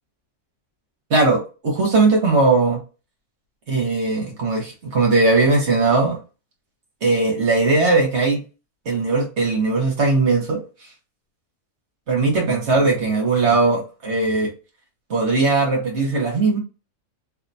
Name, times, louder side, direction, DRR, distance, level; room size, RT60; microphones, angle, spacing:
voice 1, 1.1-2.8 3.7-6.2 7.0-8.4 8.8-10.6 12.1-14.5 15.1-16.6, right 3 dB, 50° right, 0 dB, 1.4 m, -19 dB
3.4 x 2.7 x 2.6 m, 0.32 s
omnidirectional pair, 1.6 m